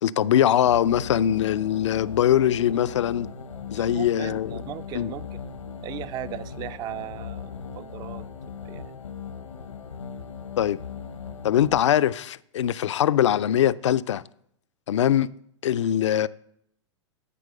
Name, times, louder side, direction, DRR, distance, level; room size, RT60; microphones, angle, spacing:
voice 1, 0.0-3.3 3.7-4.6 4.9-5.1 10.6-10.8 11.4-14.2 14.9-15.3 15.6-16.3, left 11 dB, 70° left, 0.4 m, -22 dB
sound 1, 0.6-11.9, left 6 dB, 85° left, 0.9 m, -39 dB
voice 2, 3.8-5.5 5.8-8.3 8.6-8.9, right 12 dB, 25° right, 0.4 m, -37 dB
14.0 x 4.7 x 5.2 m
figure-of-eight pair, 105°, 16 cm